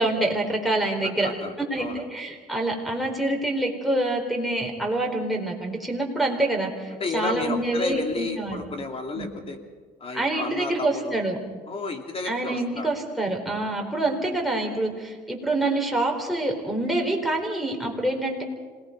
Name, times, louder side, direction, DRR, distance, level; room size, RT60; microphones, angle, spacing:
voice 1, 0.0-1.3 1.7-8.6 9.1-9.3 10.1-11.4 12.2-18.4, right 2 dB, ahead, -1 dB, 4.4 m, -26 dB
voice 2, 1.2-2.0 7.0-9.6 10.0-11.3 11.7-12.9, left 3 dB, 35° left, 4 dB, 2.8 m, -32 dB
26.5 x 19.0 x 5.3 m, 1.5 s
cardioid pair, 110°, 17 cm